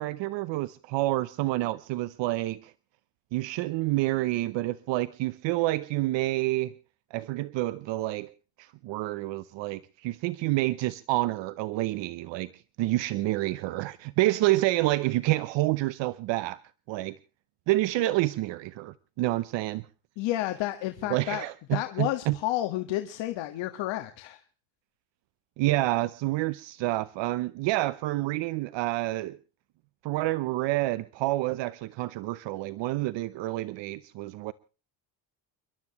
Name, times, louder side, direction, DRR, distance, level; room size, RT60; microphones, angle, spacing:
voice 1, 0.0-2.7 3.3-6.7 7.1-8.3 8.6-16.6 16.9-17.1 17.7-19.8 21.1-22.4 25.6-29.4 30.0-34.5, right 18 dB, 70° right, 0.8 m, -28 dB
voice 2, 20.2-21.4 21.7-24.4, left 15 dB, 70° left, 1.7 m, -31 dB
30.0 x 12.0 x 3.0 m
cardioid pair, 150°, 46 cm